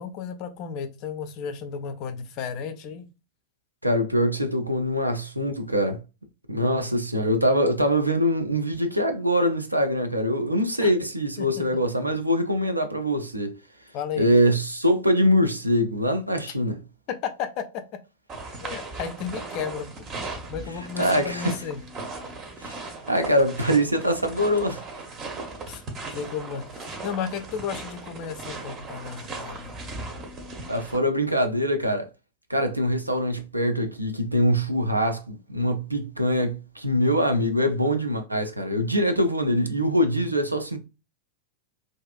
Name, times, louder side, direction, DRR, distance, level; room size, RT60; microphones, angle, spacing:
voice 1, 0.0-3.1 10.8-10.9 11.4-11.6 13.9-14.3 17.1-17.8 18.6-20.1 20.5-21.8 25.7-25.8 26.1-29.7, left 7 dB, 40° left, 0.4 m, -33 dB
voice 2, 3.8-6.0 6.5-13.6 14.2-16.8 21.0-21.5 22.6-22.8 23.1-24.8 30.7-32.1 32.5-40.8, equal, 85° right, 0.4 m, -23 dB
sound 1, 18.3-31.0, right 3 dB, 30° right, 0.7 m, -37 dB
2.5 x 2.4 x 2.3 m
figure-of-eight pair, 90°, 0 cm